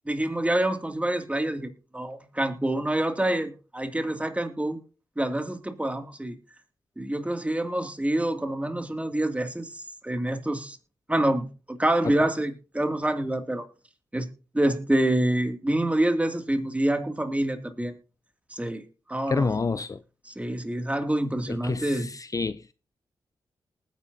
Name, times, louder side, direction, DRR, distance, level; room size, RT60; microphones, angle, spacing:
voice 1, 0.1-4.8 5.2-6.3 7.0-9.7 10.0-10.8 11.1-13.7 14.1-14.3 14.5-17.9 18.5-18.8 19.1-19.5 20.3-22.1, right 1 dB, 15° right, 2.5 m, -26 dB
voice 2, 19.3-20.0 21.5-22.7, left 4 dB, 35° left, 0.5 m, -29 dB
20.0 x 9.5 x 2.8 m
supercardioid pair, 45°, 10 cm